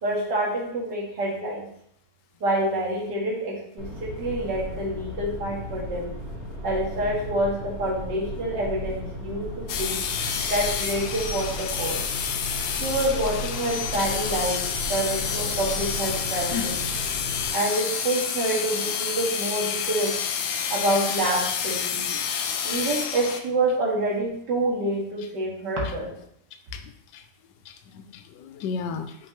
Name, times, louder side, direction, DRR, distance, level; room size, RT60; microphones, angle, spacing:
voice 1, 0.0-1.7 2.4-6.1 6.6-10.0 10.5-12.0 12.8-14.6 14.9-16.8 17.5-20.1 20.7-22.1 22.6-26.1, right 1 dB, 80° right, -3 dB, 2.3 m, -27 dB
sound 1, 3.8-17.5, equal, 10° right, 2.6 m, -35 dB
sound 2, 9.7-23.4, left 7 dB, 75° left, 1.1 m, -29 dB
voice 2, 16.5-17.0 22.1-22.6 26.7-26.8 27.1-27.2 27.7-29.2, left 6 dB, 90° left, 7 dB, 1.3 m, -34 dB
5.7 x 5.5 x 3.0 m, 0.68 s
omnidirectional pair, 1.8 m